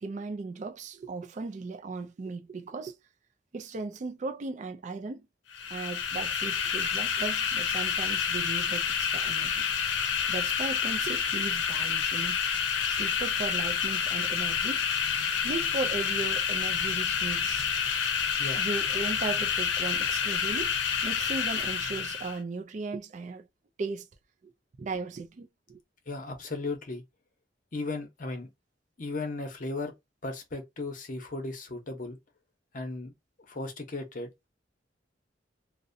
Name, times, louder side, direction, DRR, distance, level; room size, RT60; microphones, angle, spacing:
voice 1, 0.0-3.0 3.5-5.3 5.7-9.6 10.3-12.4 12.9-14.8 15.4-17.7 18.6-20.7 21.0-23.5 23.8-24.1 24.4-24.5 24.8-25.8, right 3 dB, 40° right, 0.4 m, -37 dB
sound 1, 5.5-22.4, left 7 dB, 90° left, 0.6 m, -29 dB
voice 2, 26.1-27.0 27.7-28.5 29.0-29.9 30.2-32.2 32.7-33.1 33.5-34.3, left 2 dB, 45° left, 0.8 m, -36 dB
2.6 x 2.1 x 2.6 m
head